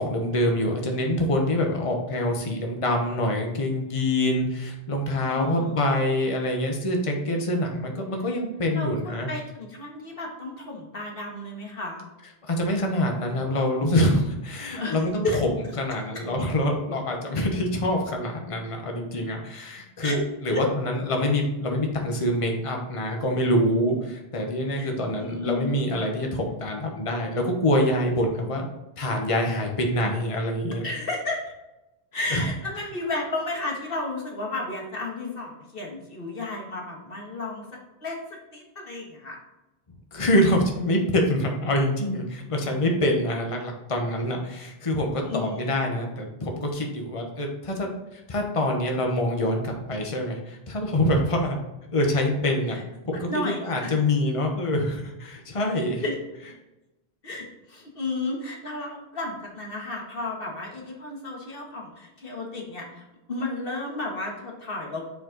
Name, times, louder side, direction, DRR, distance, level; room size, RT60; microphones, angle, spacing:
voice 1, 0.0-9.3 12.5-15.5 15.8-20.2 20.4-28.7 29.0-30.9 32.3-32.4 40.1-51.6 51.9-52.8 53.0-56.0, left 1 dB, 35° left, 2 dB, 1.0 m, -25 dB
voice 2, 5.3-5.8 8.7-12.1 14.8-15.0 15.2-15.4 16.1-16.2 20.0-20.2 20.5-20.6 24.7-24.9 25.2-25.7 30.8-31.4 32.1-37.6 38.0-38.2 38.5-39.4 45.3-45.8 52.7-52.8 53.3-53.9 56.0-56.2 57.2-65.0, left 2 dB, 65° left, 0 dB, 1.7 m, -32 dB
7.2 x 4.7 x 3.9 m, 0.96 s
omnidirectional pair, 1.0 m